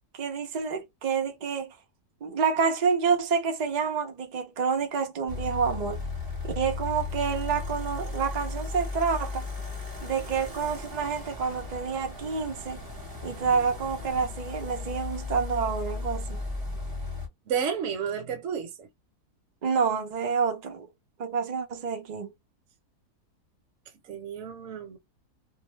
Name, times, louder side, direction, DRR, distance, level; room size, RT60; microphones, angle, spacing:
voice 1, 0.1-1.7 2.2-6.0 6.4-9.5 10.0-12.8 13.2-16.4 19.6-20.9 21.2-22.3, right 5 dB, 80° right, 0.3 m, -28 dB
sound 1, 5.3-17.3, left 3 dB, 15° right, 0.8 m, -36 dB
voice 2, 17.5-18.9 24.1-25.0, right 7 dB, 60° right, 1.0 m, -31 dB
2.6 x 2.1 x 3.1 m
omnidirectional pair, 1.7 m